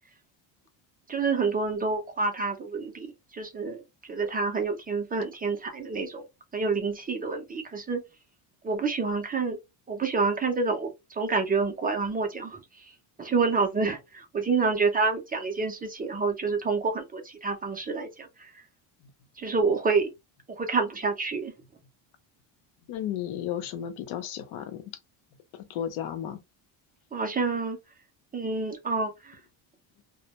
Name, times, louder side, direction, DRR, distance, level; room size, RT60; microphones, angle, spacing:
voice 1, 1.1-3.1 3.3-6.3 6.5-8.0 8.6-9.6 9.9-12.9 13.2-18.6 19.4-20.1 20.5-21.5 27.1-27.8 28.3-29.4, right 4 dB, 20° right, 0.4 m, -28 dB
voice 2, 22.9-24.8 25.5-26.4, left 10 dB, 80° left, 0.7 m, -33 dB
2.1 x 2.1 x 2.8 m
cardioid pair, 110°, 48 cm